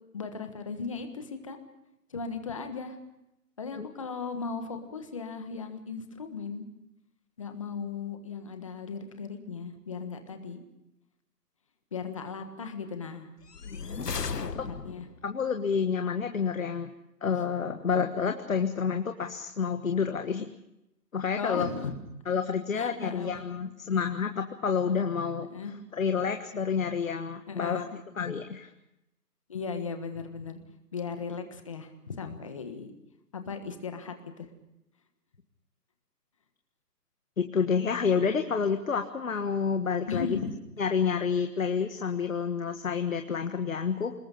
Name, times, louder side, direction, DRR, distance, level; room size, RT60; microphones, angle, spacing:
voice 1, 0.1-1.6 2.1-3.0 3.6-6.7 7.4-10.6 11.9-13.3 13.8-15.1 21.4-21.9 22.7-23.3 25.5-25.7 27.5-27.9 29.5-30.6 30.9-33.0 33.3-34.5 40.1-40.5, left 5 dB, 20° left, 7 dB, 1.4 m, -37 dB
sound 1, 13.4-15.2, left 5 dB, 70° left, 1.7 m, -35 dB
voice 2, 15.2-16.9 17.2-20.5 21.1-21.7 22.3-25.5 25.9-28.7 37.4-40.4 40.8-44.1, left 6 dB, 55° left, 6 dB, 1.6 m, -29 dB
29.0 x 20.5 x 5.2 m, 0.86 s
hypercardioid pair, 170°, 49 cm